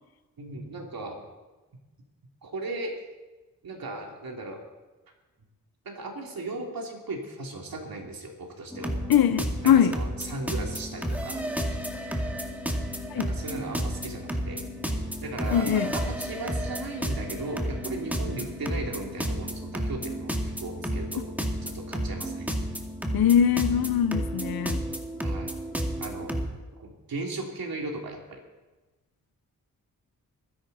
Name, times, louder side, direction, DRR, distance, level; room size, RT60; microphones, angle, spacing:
voice 1, 0.4-1.2 2.4-3.0 3.6-4.6 5.8-8.9 9.6-11.4 13.1-14.6 14.8-20.3 20.6-21.3 21.6-22.5 25.2-25.5 26.0-26.3 26.8-28.4, right 2 dB, 75° right, 0 dB, 3.1 m, -37 dB
sound 1, 8.7-26.5, equal, 5° right, 2.3 m, -32 dB
voice 2, 9.1-10.0 13.1-13.3 15.5-15.9 23.1-24.8, left 9 dB, 85° left, 12 dB, 0.7 m, -22 dB
24.0 x 11.0 x 4.2 m, 1.2 s
cardioid pair, 65°, 35 cm